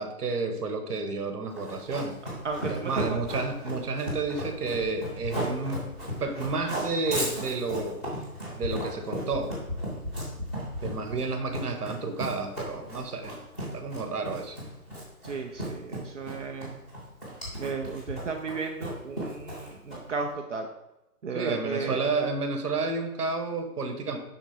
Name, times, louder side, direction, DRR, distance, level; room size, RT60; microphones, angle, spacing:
voice 1, 0.0-2.2 2.7-5.9 6.2-8.0 8.5-9.5 10.8-13.3 13.6-14.6 21.3-24.2, right 3 dB, 75° right, 7 dB, 1.2 m, -31 dB
Run, 1.5-20.2, equal, ahead, 0.8 m, -35 dB
voice 2, 2.4-3.2 15.2-16.8 17.5-20.7 21.2-22.1, right 4 dB, 50° right, 3 dB, 0.6 m, -34 dB
5.9 x 3.9 x 4.3 m, 0.94 s
hypercardioid pair, 160°, 47 cm